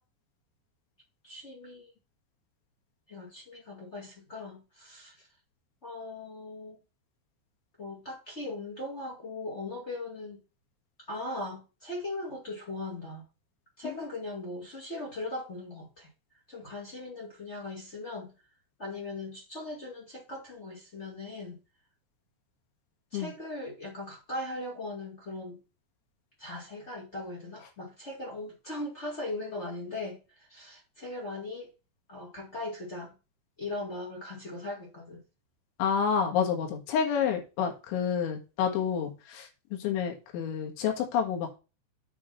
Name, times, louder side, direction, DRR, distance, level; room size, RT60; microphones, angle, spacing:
voice 1, 1.2-1.9 3.1-5.3 5.8-6.8 7.8-10.4 11.1-13.2 13.8-16.1 16.5-18.3 18.8-21.6 23.1-25.6 26.4-31.7 32.1-33.1 33.6-35.2, left 2 dB, 55° left, 0.7 m, -39 dB
voice 2, 35.8-41.6, left 7 dB, 80° left, 4.0 m, -29 dB
8.9 x 3.6 x 5.8 m
omnidirectional pair, 5.4 m